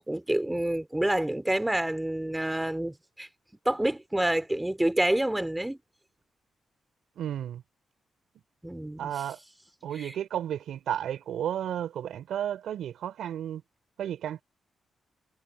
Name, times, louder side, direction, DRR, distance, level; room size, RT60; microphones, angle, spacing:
voice 1, 0.0-3.3 3.6-5.8 8.6-9.1 10.0-10.1, right 1 dB, 10° right, 3.5 m, -28 dB
voice 2, 7.2-7.6 9.0-9.4 9.8-13.6 14.0-14.4, right 10 dB, 75° right, 3.6 m, -33 dB
hypercardioid pair, 45°, 0 cm